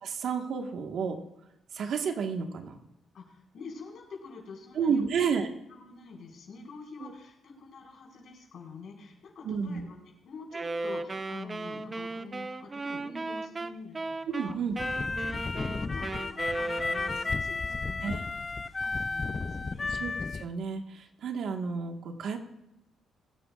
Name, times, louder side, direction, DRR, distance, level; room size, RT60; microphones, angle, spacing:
voice 1, 0.0-1.2 1.7-2.8 4.7-5.5 7.0-7.1 9.4-9.8 14.3-14.8 18.0-18.2 20.0-22.4, right 6 dB, 65° right, 4 dB, 1.5 m, -31 dB
voice 2, 3.1-5.1 5.7-10.0 10.2-14.6 15.3-18.3 18.8-19.9, left 4 dB, 60° left, -2 dB, 5.1 m, -46 dB
Wind instrument woodwind instrument, 10.5-17.5, right 3 dB, 30° right, 0.7 m, -36 dB
sound 1, 14.8-20.5, left 3 dB, 30° left, 0.5 m, -33 dB
23.0 x 9.8 x 2.5 m, 0.90 s
cardioid pair, 90°, 0 cm